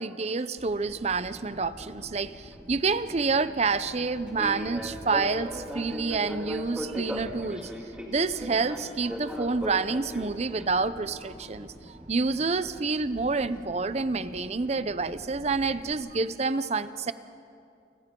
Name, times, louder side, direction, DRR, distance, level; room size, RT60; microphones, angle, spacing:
voice 1, 0.0-7.7 8.1-17.1, right 4 dB, 35° right, 13 dB, 0.6 m, -28 dB
Fixed-wing aircraft airplane, 0.6-15.9, equal, 5° right, 2.1 m, -40 dB
29.5 x 26.0 x 3.8 m, 2.5 s
head